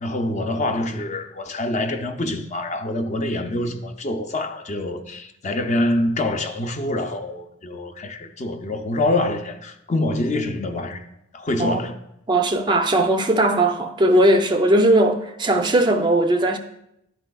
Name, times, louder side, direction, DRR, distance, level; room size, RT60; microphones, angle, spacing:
voice 1, 0.0-11.0 11.3-12.0, left 1 dB, 35° left, 0.5 m, -25 dB
voice 2, 12.3-16.6, right 1 dB, 25° right, 0.4 m, -18 dB
11.0 x 4.3 x 2.3 m
head